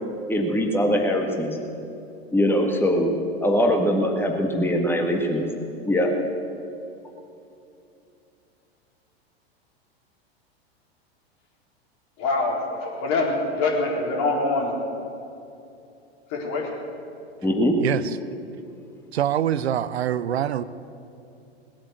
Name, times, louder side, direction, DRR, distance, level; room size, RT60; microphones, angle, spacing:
voice 1, 0.3-1.6 2.3-3.1 3.4-5.5 5.8-6.1 17.4-17.8, equal, 5° left, 2 dB, 1.7 m, -22 dB
voice 2, 12.2-14.8 16.3-16.7, left 3 dB, 50° left, -1 dB, 4.2 m, -24 dB
voice 3, 17.8-18.1 19.1-20.6, right 10 dB, 80° right, 15 dB, 0.7 m, -24 dB
19.5 x 8.7 x 8.5 m, 2.7 s
hypercardioid pair, 100°, 32 cm